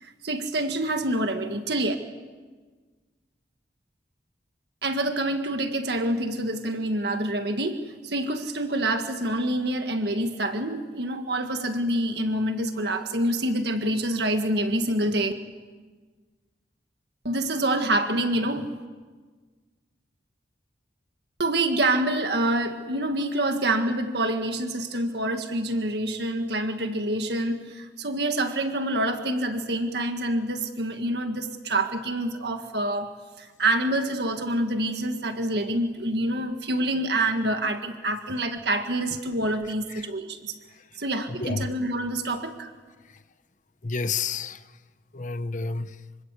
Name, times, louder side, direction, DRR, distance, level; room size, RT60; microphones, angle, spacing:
voice 1, 0.0-2.0 4.8-15.3 17.2-18.7 21.4-33.1 33.4-40.5 41.0-42.7, right 1 dB, 60° right, 1.8 m, -27 dB
voice 2, 41.3-41.7 43.1-43.2 43.8-44.6 45.1-46.0, left 4 dB, 45° left, 1.0 m, -30 dB
26.5 x 24.5 x 8.4 m
head